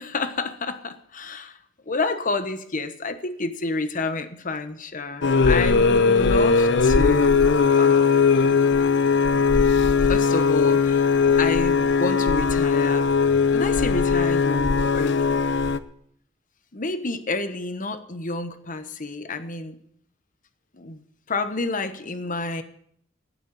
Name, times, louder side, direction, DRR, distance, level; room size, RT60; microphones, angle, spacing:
voice 1, 0.0-1.6 1.9-7.5 7.7-8.4 10.0-13.1 13.5-15.4 16.7-19.8 20.7-21.0 21.3-22.6, left 3 dB, 45° left, 10 dB, 1.2 m, -29 dB
sound 1, 5.2-15.8, left 5 dB, 65° left, 0.7 m, -19 dB
11.0 x 9.6 x 8.3 m, 0.67 s
head